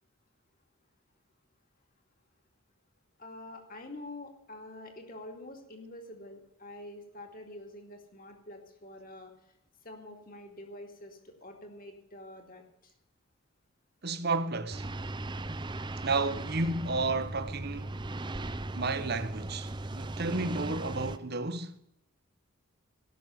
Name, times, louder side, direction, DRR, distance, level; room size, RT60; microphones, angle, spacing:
voice 1, 3.2-9.5 9.8-12.9, left 1 dB, 40° left, 2.3 m, -47 dB
voice 2, 14.0-14.9 16.0-17.9 18.7-21.8, right 3 dB, 50° right, 0.9 m, -32 dB
sound 1, 14.7-21.2, right 2 dB, 20° right, 0.5 m, -38 dB
17.5 x 6.3 x 9.3 m
head